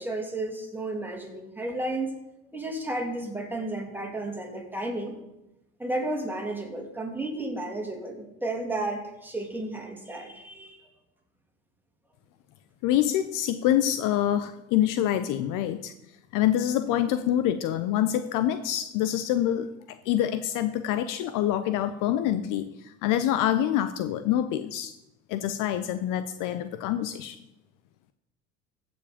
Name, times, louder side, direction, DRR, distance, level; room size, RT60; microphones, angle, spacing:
voice 1, 0.0-2.1 2.5-5.1 5.8-10.9, right 2 dB, 5° right, 1 dB, 2.7 m, -32 dB
voice 2, 12.8-15.9 16.3-24.9 25.3-27.4, left 11 dB, 50° left, 11 dB, 0.7 m, -26 dB
15.0 x 5.2 x 5.1 m, 0.89 s
hypercardioid pair, 75°, 41 cm